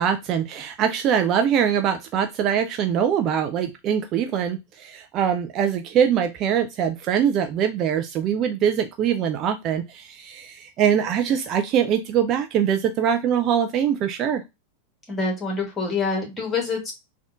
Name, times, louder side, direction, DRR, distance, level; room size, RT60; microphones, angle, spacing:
voice 1, 0.0-14.4, right 8 dB, 35° right, 7 dB, 0.3 m, -23 dB
voice 2, 15.1-16.9, left 3 dB, 15° left, 0 dB, 1.4 m, -26 dB
3.4 x 2.3 x 2.5 m, 0.22 s
figure-of-eight pair, 90°, 0 cm